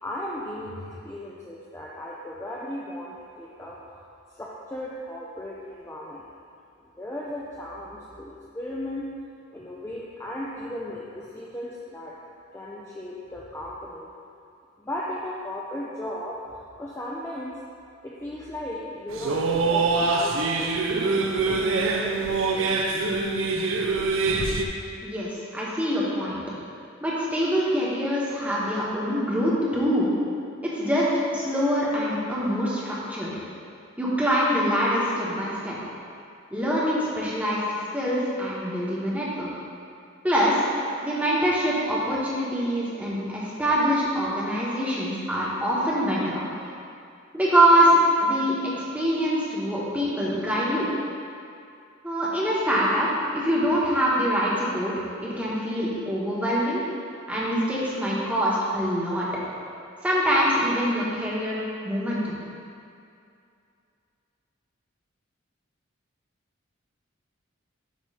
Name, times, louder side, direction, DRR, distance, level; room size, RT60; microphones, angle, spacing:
voice 1, 0.0-4.1 4.3-6.3 7.0-9.1 9.5-12.2 12.5-14.1 14.8-17.6 18.0-20.7 21.2-22.8, left 1 dB, 15° left, -5 dB, 0.4 m, -36 dB
sound 1, 19.1-24.6, right 3 dB, 70° right, 0.5 m, -24 dB
voice 2, 25.0-26.4 27.0-30.1 30.6-33.3 34.0-35.8 36.5-39.5 40.2-40.6 41.0-46.5 47.3-50.9 52.0-54.9 55.2-56.8 57.3-59.3 60.0-62.4, equal, 5° right, -7 dB, 1.0 m, -24 dB
7.3 x 3.0 x 5.4 m, 2.5 s
head